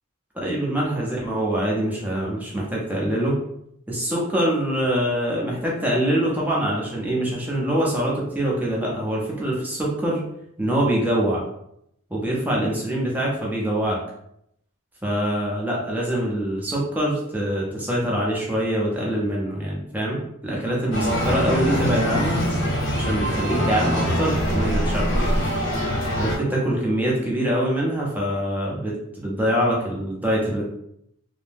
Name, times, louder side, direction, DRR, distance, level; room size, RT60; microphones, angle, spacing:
voice 1, 0.3-3.4 3.9-10.2 10.6-11.4 12.1-14.0 15.0-22.4 22.9-25.2 26.2-30.6, right 1 dB, 5° right, -4 dB, 0.5 m, -24 dB
sound 1, 20.9-26.4, equal, 60° left, 0.7 m, -23 dB
2.7 x 2.1 x 3.3 m, 0.76 s
head